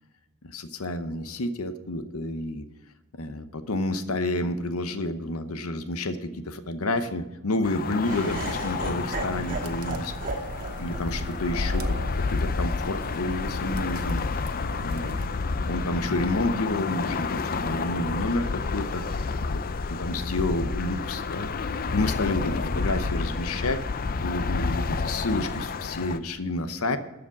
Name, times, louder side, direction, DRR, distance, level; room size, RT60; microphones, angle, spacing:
voice 1, 0.4-2.6 3.2-10.2 10.8-14.4 14.8-15.4 15.7-19.2 19.5-19.6 19.9-21.5 21.9-23.8 24.2-27.0, left 2 dB, 75° left, 10 dB, 0.9 m, -30 dB
cars pass by, 7.6-26.2, left 4 dB, 40° left, 0.5 m, -30 dB
Laughter, 8.0-14.1, right 2 dB, 40° right, 2.1 m, -36 dB
sound 1, 8.9-15.3, right 2 dB, 75° right, 1.0 m, -40 dB
13.0 x 5.1 x 8.2 m, 1.1 s
head